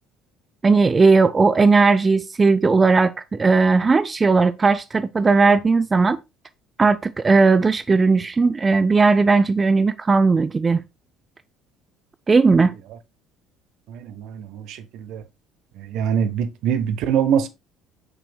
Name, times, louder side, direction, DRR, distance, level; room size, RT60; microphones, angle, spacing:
voice 1, 0.6-3.1 3.4-6.2 6.8-10.8 12.3-12.7, right 4 dB, 25° right, 0.5 m, -17 dB
voice 2, 13.9-14.8 15.1-15.2 15.9-17.5, right 8 dB, 60° right, 0.8 m, -23 dB
8.0 x 5.9 x 2.3 m
figure-of-eight pair, 55°, 0 cm